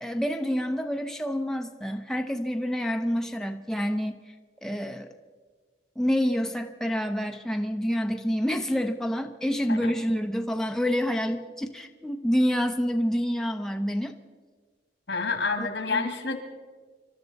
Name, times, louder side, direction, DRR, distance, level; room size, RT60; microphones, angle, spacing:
voice 1, 0.0-4.2 4.6-5.1 6.0-14.1 15.6-16.1, equal, 5° left, 4 dB, 0.6 m, -28 dB
voice 2, 15.1-16.4, left 4 dB, 80° left, 6 dB, 2.1 m, -28 dB
26.5 x 13.0 x 4.1 m, 1.5 s
head